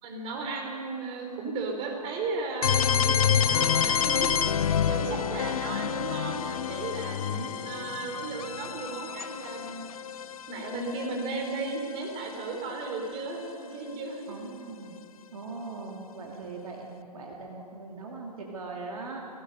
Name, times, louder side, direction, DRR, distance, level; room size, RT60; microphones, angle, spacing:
voice 1, 0.0-4.3 4.9-7.2 7.6-9.9 10.5-14.3 15.9-16.4, right 3 dB, 25° right, 2 dB, 4.0 m, -35 dB
sound 1, 2.6-12.4, left 8 dB, 60° left, 0.6 m, -28 dB
voice 2, 3.1-3.5 5.3-5.7 7.3-8.1 14.3-15.0 15.3-19.2, right 3 dB, 60° right, -1 dB, 2.6 m, -41 dB
26.5 x 18.0 x 5.5 m, 2.5 s
figure-of-eight pair, 120°, 20 cm